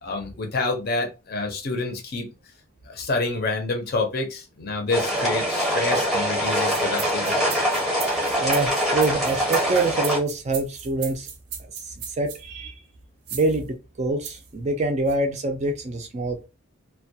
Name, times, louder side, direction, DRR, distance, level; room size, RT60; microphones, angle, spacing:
voice 1, 0.0-2.3 2.9-7.5, left 3 dB, 45° left, 0.6 m, -28 dB
sound 1, 4.9-10.2, equal, ahead, 0.7 m, -24 dB
sound 2, 6.6-12.4 13.3-13.6 14.2-14.5 15.1-15.2, right 8 dB, 90° right, 0.6 m, -36 dB
voice 2, 8.4-11.3 12.2-12.8 13.3-16.5, right 2 dB, 30° right, 0.3 m, -25 dB
2.2 x 2.1 x 2.7 m
head